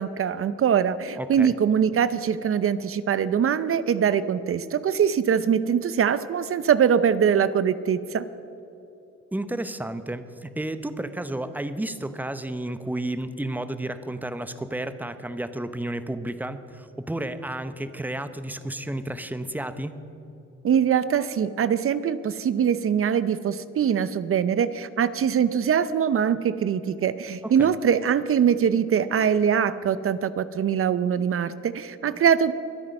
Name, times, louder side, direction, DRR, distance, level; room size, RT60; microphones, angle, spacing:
voice 1, 0.0-8.3 20.6-32.5, right 8 dB, 45° right, 15 dB, 0.6 m, -23 dB
voice 2, 1.2-1.5 9.3-19.9 27.4-27.7, right 1 dB, 5° right, 11 dB, 0.8 m, -32 dB
23.0 x 8.7 x 5.4 m, 2.9 s
cardioid pair, 90°, 30 cm